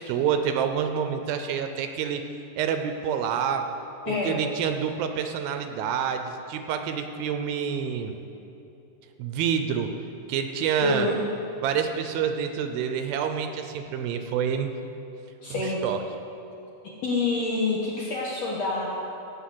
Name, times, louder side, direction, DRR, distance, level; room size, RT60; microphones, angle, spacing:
voice 1, 0.0-2.2 2.6-3.7 4.1-8.1 9.2-9.9 10.3-11.1 11.6-14.7 15.6-16.0, right 8 dB, 80° right, 7 dB, 2.4 m, -27 dB
voice 2, 4.1-4.4 10.8-11.1 15.4-15.8 17.0-18.9, left 3 dB, 65° left, -4 dB, 1.8 m, -27 dB
17.0 x 5.7 x 7.7 m, 2.9 s
omnidirectional pair, 4.5 m